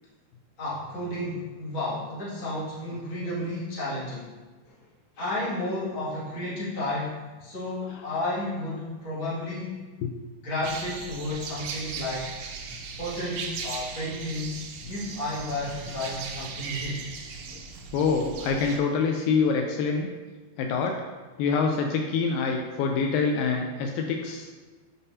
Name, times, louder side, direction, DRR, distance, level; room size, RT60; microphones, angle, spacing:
voice 1, 0.6-4.3 5.2-9.8 10.4-12.3 13.0-17.0, left 1 dB, 40° left, -9 dB, 2.5 m, -32 dB
sound 1, 10.6-18.8, right 5 dB, 75° right, 2.0 m, -38 dB
voice 2, 17.9-20.1 20.6-20.9 21.4-24.5, left 5 dB, 85° left, 2 dB, 2.3 m, -25 dB
9.3 x 5.7 x 2.7 m, 1.3 s
omnidirectional pair, 4.1 m